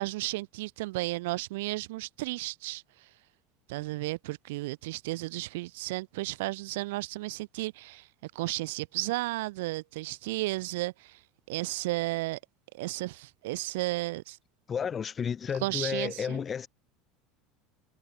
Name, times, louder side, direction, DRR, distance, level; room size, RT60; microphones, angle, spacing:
voice 1, 0.0-3.1 3.7-11.2 11.5-12.4 12.7-14.4 15.6-16.4, right 20 dB, 80° right, 7.9 m, -33 dB
voice 2, 14.7-16.7, left 7 dB, 25° left, 7.4 m, -32 dB
supercardioid pair, 135°, 0 cm